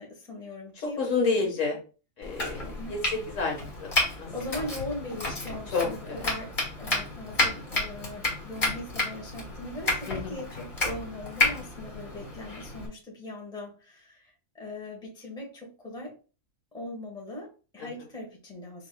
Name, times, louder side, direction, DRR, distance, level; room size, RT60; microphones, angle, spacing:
voice 1, 0.0-1.6 2.6-2.9 4.3-16.1 16.7-18.9, left 1 dB, 5° left, -1 dB, 1.1 m, -40 dB
voice 2, 1.0-1.7 2.2-3.9 4.2-4.3 5.7-6.2 10.1-10.3 17.8-17.9, left 4 dB, 65° left, 2 dB, 1.7 m, -29 dB
Domestic sounds home sounds, 2.2-12.9, left 2 dB, 40° left, 1.6 m, -31 dB
5.8 x 3.7 x 2.2 m, 0.35 s
omnidirectional pair, 1.4 m